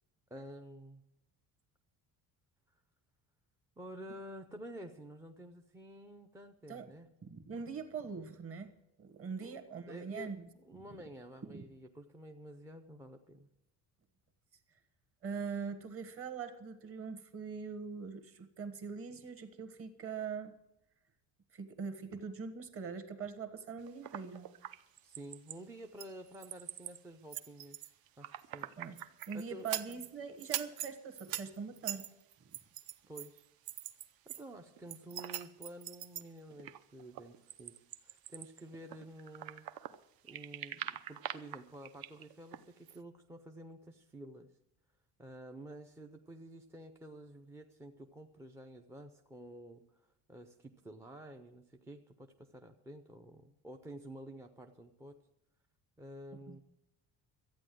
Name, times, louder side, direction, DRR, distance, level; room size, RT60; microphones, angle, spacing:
voice 1, 0.3-1.0 3.8-7.1 9.4-13.5 25.0-29.0 29.3-29.7 33.1-33.5 34.3-37.7 38.0-39.7 40.2-44.5 45.2-55.2 56.0-56.6, right 1 dB, 10° right, 4 dB, 0.4 m, -50 dB
voice 2, 7.2-8.7 9.0-10.4 11.5-11.6 15.2-20.5 21.5-24.5 28.8-29.0 29.3-32.0 56.5-56.6, right 5 dB, 35° right, 9 dB, 1.3 m, -42 dB
sound 1, 23.9-25.6 26.0-27.0 27.3-30.1 30.4-34.4 34.8-40.0 40.3-42.6 42.9-43.0, right 12 dB, 65° right, 0.8 m, -43 dB
13.5 x 9.1 x 7.6 m, 0.87 s
cardioid pair, 175°, 39 cm